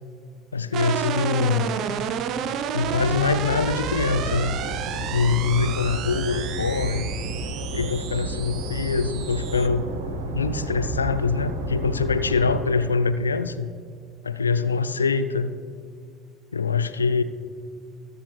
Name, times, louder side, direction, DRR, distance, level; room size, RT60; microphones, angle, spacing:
voice 1, 0.5-1.7 2.7-4.6 5.1-7.1 7.7-9.9 10.3-13.7 14.2-15.5 16.5-17.2, left 4 dB, 80° left, 12 dB, 0.4 m, -24 dB
sound 1, 0.7-9.7, right 8 dB, 45° right, 0.5 m, -31 dB
sound 2, 2.8-12.6, right 2 dB, 70° right, 1.3 m, -31 dB
20.0 x 6.7 x 3.2 m, 2.2 s
figure-of-eight pair, 65°, 0 cm